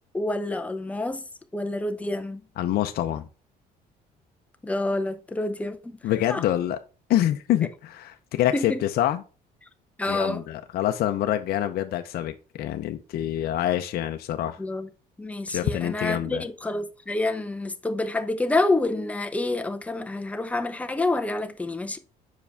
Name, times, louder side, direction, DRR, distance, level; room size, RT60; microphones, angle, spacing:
voice 1, 0.1-1.2 1.5-2.4 4.6-6.0 6.3-6.4 8.5-8.8 10.0-10.4 14.6-14.9 15.2-22.0, left 2 dB, 10° left, 0.6 m, -28 dB
voice 2, 2.6-3.3 6.0-6.8 7.1-9.2 10.1-14.6 15.5-16.4, left 12 dB, 65° left, 0.6 m, -26 dB
6.1 x 4.8 x 3.4 m
cardioid pair, 110°, 17 cm